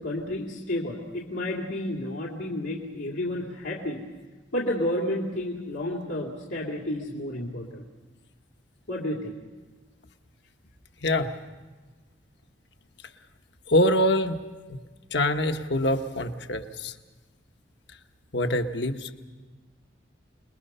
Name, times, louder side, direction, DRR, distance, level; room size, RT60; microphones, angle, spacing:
voice 1, 0.0-4.0 4.5-7.8 8.9-9.4, left 1 dB, 85° left, -3 dB, 2.4 m, -31 dB
voice 2, 11.0-11.3 13.7-14.4 14.7-14.8 15.1-16.9 18.3-19.1, left 1 dB, 65° left, 6 dB, 1.2 m, -24 dB
28.5 x 21.0 x 5.6 m, 1.3 s
head